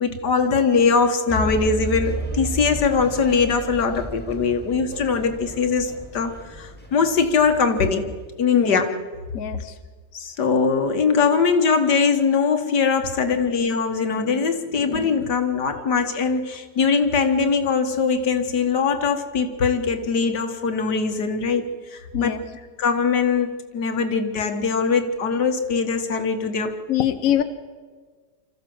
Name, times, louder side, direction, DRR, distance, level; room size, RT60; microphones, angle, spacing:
voice 1, 0.0-8.1 8.4-8.9 10.1-21.6 21.9-22.3 22.8-26.7, left 5 dB, 75° left, 7 dB, 2.1 m, -21 dB
sound 1, 1.3-8.3, right 2 dB, 5° left, 2.2 m, -33 dB
voice 2, 9.3-9.8 22.1-22.4 26.9-27.4, left 11 dB, 55° left, 9 dB, 1.2 m, -23 dB
25.5 x 14.5 x 7.8 m, 1.5 s
omnidirectional pair, 1.8 m